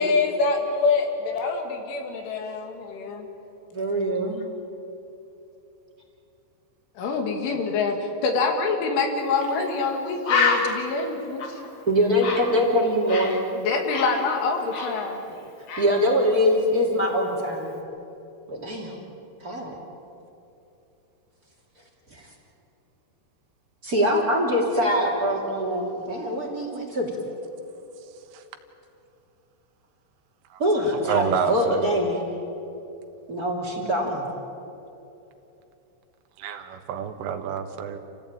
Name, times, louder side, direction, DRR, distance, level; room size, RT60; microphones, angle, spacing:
voice 1, 0.0-3.3 7.0-8.0 8.2-11.6 13.5-15.4, left 4 dB, 75° left, 3 dB, 4.7 m, -25 dB
voice 2, 3.7-4.4 11.9-13.4 15.8-17.7 18.5-18.9 19.4-19.7 22.1-22.3 23.8-27.1 30.6-32.2 33.3-34.3, equal, 25° right, 0 dB, 2.2 m, -23 dB
Bird, 9.4-9.5 9.9-10.0 10.2-13.4 13.7-15.4 15.7-16.0, left 4 dB, 50° left, 1.9 m, -28 dB
voice 3, 31.1-31.9 36.4-38.0, right 7 dB, 85° right, 6 dB, 4.0 m, -28 dB
28.5 x 16.0 x 9.0 m, 2.9 s
omnidirectional pair, 5.6 m